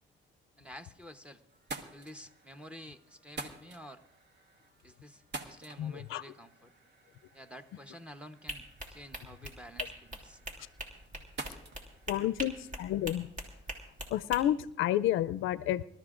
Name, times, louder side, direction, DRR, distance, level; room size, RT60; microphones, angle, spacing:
voice 1, 0.6-1.4 1.9-4.0 4.8-6.7 7.3-10.4 12.2-12.3, equal, 5° right, 7 dB, 0.9 m, -50 dB
sound 1, 0.9-1.2 1.5-13.1, right 2 dB, 60° right, 1.5 m, -49 dB
voice 2, 5.8-6.2 12.1-13.3 14.1-15.8, left 12 dB, 85° left, 15 dB, 0.4 m, -30 dB
sound 2, 8.5-14.4, right 1 dB, 40° right, 3.0 m, -42 dB
25.0 x 13.0 x 2.5 m, 0.85 s
cardioid pair, 90°, 20 cm